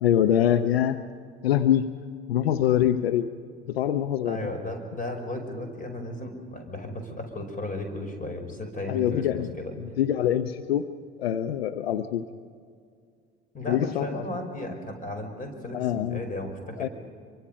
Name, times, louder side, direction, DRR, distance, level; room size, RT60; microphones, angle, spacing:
voice 1, 0.0-1.0 1.4-1.9 2.3-3.3 3.7-4.4 8.9-9.5 10.0-10.9 11.2-12.2 13.7-14.3 15.7-16.2 16.8-16.9, left 10 dB, 75° left, 11 dB, 0.7 m, -24 dB
voice 2, 4.2-9.7 13.5-16.9, left 1 dB, 25° left, 5 dB, 5.3 m, -35 dB
26.0 x 24.0 x 5.4 m, 2.2 s
figure-of-eight pair, 65°, 31 cm